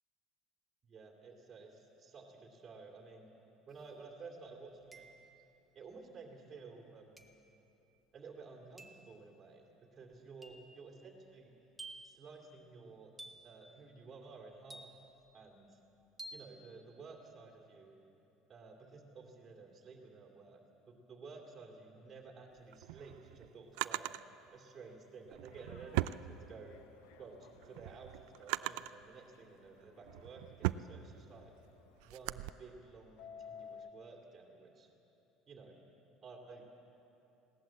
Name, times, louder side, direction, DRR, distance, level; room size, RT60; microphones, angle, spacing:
voice 1, 0.8-3.3 3.7-5.1 5.7-7.3 8.1-11.5 12.0-13.1 13.4-14.9 15.3-15.7 16.3-17.9 18.5-24.2 24.5-26.8 27.2-31.5 32.0-34.9 35.5-35.8 36.2-36.6, right 4 dB, 20° right, 0 dB, 2.5 m, -53 dB
sound 1, 3.7-3.8 4.9-5.5 7.2-7.5 8.8-9.1 10.4-10.8 11.8-12.2 13.2-13.6 14.7-15.2 16.2-16.5, right 1 dB, 5° right, 1.0 m, -51 dB
Drawer open or close, 22.6-24.2 25.3-26.9 27.3-29.0 29.7-32.5, right 18 dB, 70° right, 0.4 m, -39 dB
Subway metro underground, 25.5-33.9, left 7 dB, 80° left, 0.9 m, -58 dB
20.0 x 17.5 x 7.6 m, 3.0 s
cardioid pair, 175°, 0 cm